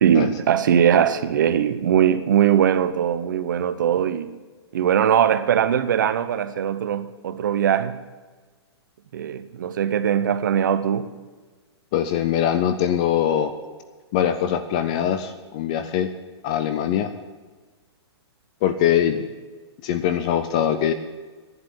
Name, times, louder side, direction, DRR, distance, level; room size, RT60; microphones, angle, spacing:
voice 1, 0.0-4.3 4.7-8.0 9.1-11.1, right 9 dB, 45° right, 0.9 m, -20 dB
voice 2, 11.9-13.5 14.1-16.1 16.4-17.1 18.6-19.2 19.8-20.9, left 10 dB, 15° left, 0.4 m, -22 dB
11.0 x 9.4 x 10.0 m
hypercardioid pair, 180°, 14 cm